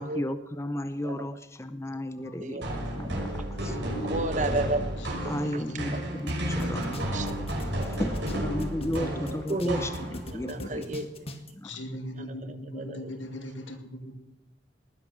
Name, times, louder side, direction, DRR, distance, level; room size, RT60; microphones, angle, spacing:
voice 1, 0.0-2.7 3.0-3.9 5.3-6.8 7.3-7.5 7.8-10.8 11.5-11.7, left 1 dB, 15° left, 10 dB, 0.6 m, -34 dB
voice 2, 2.2-2.6 3.5-3.9 5.0-6.2 6.6-7.0 8.8-10.8 11.6-14.2, equal, 85° left, 5 dB, 2.5 m, -40 dB
sound 1, 2.6-10.4, equal, 75° right, 5.9 m, -32 dB
voice 3, 4.0-4.9 5.2-5.6 5.9-6.0 7.0-7.3 9.3-9.9 10.3-11.1 12.7-13.0, right 2 dB, 40° right, 11 dB, 1.0 m, -32 dB
sound 2, 6.3-6.4 6.6-9.0 9.3-11.5, left 1 dB, 30° left, 1.5 m, -40 dB
19.5 x 11.0 x 6.1 m, 0.89 s
head